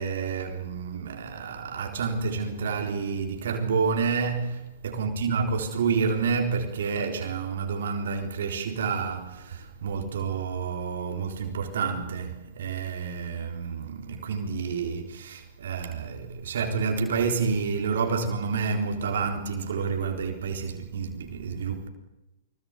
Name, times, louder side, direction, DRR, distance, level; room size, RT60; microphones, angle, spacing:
voice 1, 0.0-4.5 4.8-21.9, right 5 dB, 70° right, 3.9 m, -29 dB
25.0 x 22.0 x 9.4 m
hypercardioid pair, 115°, 0 cm